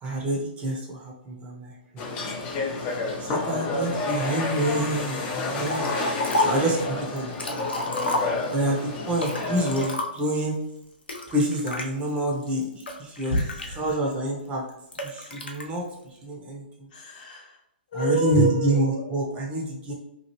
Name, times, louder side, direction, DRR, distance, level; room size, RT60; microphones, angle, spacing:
voice 1, 0.0-2.0 3.2-5.8 6.4-7.7 8.5-10.5 11.3-13.4 13.8-14.6 15.0-15.9 16.2-16.9 17.9-19.9, right 1 dB, 20° right, -1 dB, 0.6 m, -27 dB
sound 1, 2.0-9.9, left 3 dB, 30° left, 0.5 m, -30 dB
Liquid, 5.7-6.7 7.2-8.7 9.2-10.4 11.1-11.9 12.5-14.1 14.9-15.6, left 1 dB, 90° left, 0.6 m, -30 dB
voice 2, 13.3-14.0 16.9-17.5 17.9-19.1, right 1 dB, 55° left, -1 dB, 1.0 m, -28 dB
3.0 x 2.3 x 2.9 m, 0.82 s
hypercardioid pair, 130°, 5 cm